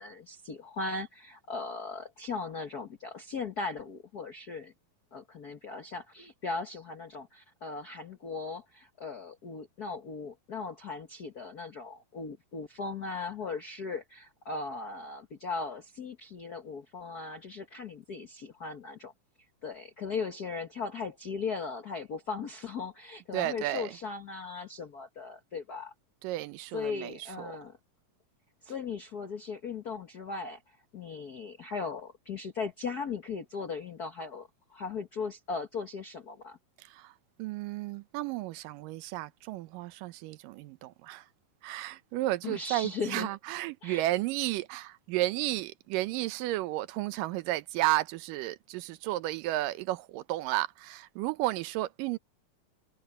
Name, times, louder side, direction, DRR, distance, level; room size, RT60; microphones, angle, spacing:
voice 1, 0.0-4.7 5.1-19.1 19.6-25.9 26.7-27.8 28.6-36.6 42.4-43.3 43.8-44.1, left 4 dB, 80° left, 0.8 m, -38 dB
voice 2, 23.3-23.9 26.2-27.5 36.8-37.1 37.4-41.3 41.6-52.2, right 16 dB, 85° right, 2.4 m, -33 dB
omnidirectional pair, 3.8 m